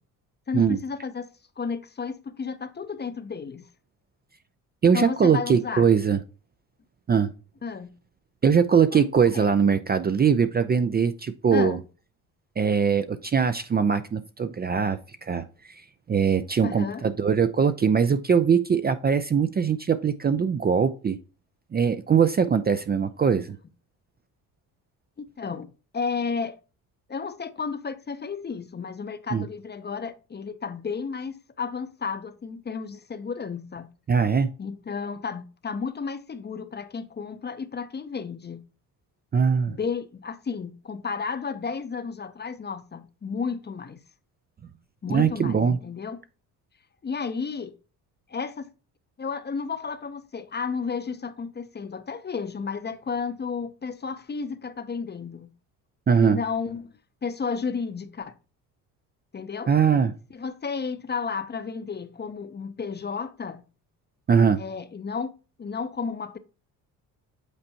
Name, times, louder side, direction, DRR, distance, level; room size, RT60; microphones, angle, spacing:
voice 1, 0.5-1.3 1.6-3.7 4.9-5.9 7.6-7.9 8.9-9.0 9.3-9.5 11.5-11.8 16.6-17.0 25.2-26.5 27.1-33.9 34.6-38.6 39.7-44.0 45.0-46.2 47.0-47.7 48.3-48.7 49.2-55.5 56.2-58.3 59.3-59.7 60.3-63.6 64.6-65.3 65.6-66.4, left 5 dB, 25° left, 0.7 m, -32 dB
voice 2, 4.8-6.2 7.1-7.3 8.4-11.8 12.6-15.8 16.1-21.2 21.7-23.6 29.3-29.4 34.1-34.5 39.3-39.8 45.1-45.8 56.1-56.4 59.7-60.1 64.3-64.6, right 6 dB, 25° right, 0.4 m, -21 dB
8.1 x 4.3 x 2.8 m
supercardioid pair, 75°, 40 cm